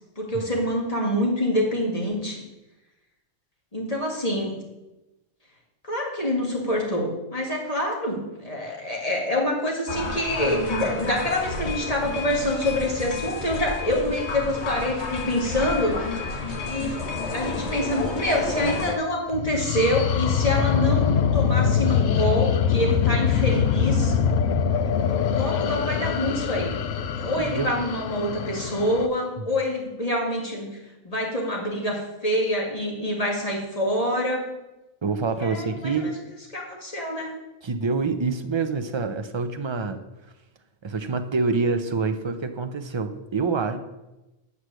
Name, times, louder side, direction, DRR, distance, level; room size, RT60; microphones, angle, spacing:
voice 1, 0.2-2.4 3.7-4.6 5.8-16.1 16.6-17.0 17.3-24.1 25.3-26.8 27.2-30.8 31.0-34.4 35.4-36.1 36.5-37.3, left 1 dB, 30° left, -1 dB, 2.0 m, -26 dB
sound 1, 9.9-19.0, left 3 dB, 60° left, 1.4 m, -31 dB
sound 2, 19.3-29.1, left 7 dB, 80° left, 1.0 m, -23 dB
voice 2, 27.4-27.7 35.0-36.2 37.6-40.0 40.8-43.8, right 4 dB, 45° right, 8 dB, 0.3 m, -26 dB
8.3 x 4.8 x 7.4 m, 0.98 s
omnidirectional pair, 1.3 m